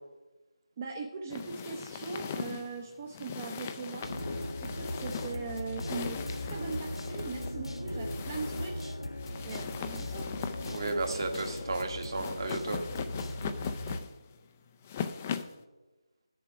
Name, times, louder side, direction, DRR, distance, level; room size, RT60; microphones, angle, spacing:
voice 1, 0.8-4.1 4.6-8.9 9.4-10.3, right 4 dB, 25° right, 1 dB, 0.6 m, -40 dB
sound 1, 1.3-15.6, left 7 dB, 20° left, 0.4 m, -40 dB
sound 2, 4.0-14.0, left 1 dB, 80° left, 1.6 m, -38 dB
voice 2, 10.7-12.8, right 3 dB, 50° right, 5 dB, 1.3 m, -33 dB
11.5 x 6.9 x 4.9 m, 1.1 s
figure-of-eight pair, 165°, 3 cm